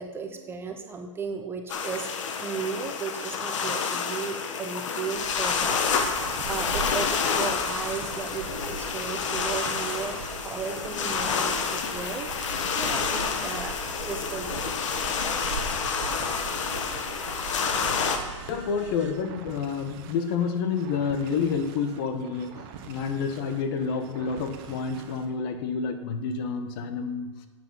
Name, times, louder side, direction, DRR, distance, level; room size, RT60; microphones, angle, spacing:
voice 1, 0.0-13.8 14.0-14.7, right 5 dB, 15° right, 5 dB, 0.6 m, -35 dB
sound 1, 1.7-18.2, left 6 dB, 65° left, 1.2 m, -29 dB
sound 2, 5.1-19.1, right 5 dB, 65° right, 1.5 m, -41 dB
sound 3, 5.9-25.3, right 7 dB, 45° right, 1.0 m, -45 dB
voice 2, 18.5-27.3, left 5 dB, 45° left, 8 dB, 1.0 m, -29 dB
7.9 x 7.6 x 5.4 m, 1.4 s
hypercardioid pair, 140°, 17 cm